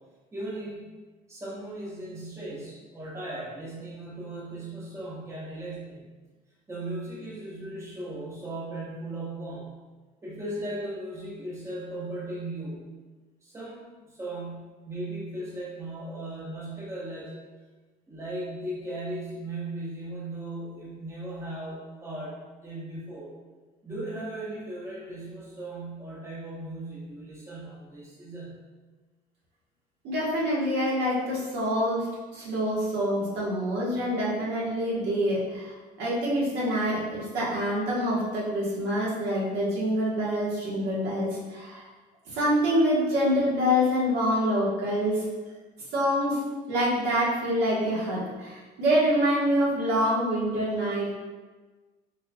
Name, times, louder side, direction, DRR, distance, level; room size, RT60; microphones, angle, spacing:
voice 1, 0.3-0.9 1.3-6.0 6.7-9.8 10.2-12.8 13.4-17.4 18.1-23.3 23.8-28.6, right 1 dB, 15° right, -6 dB, 0.9 m, -37 dB
voice 2, 30.0-41.9 42.3-45.3 45.9-51.1, equal, 75° right, -7 dB, 1.4 m, -26 dB
4.9 x 2.9 x 2.3 m, 1.3 s
cardioid pair, 110°, 17 cm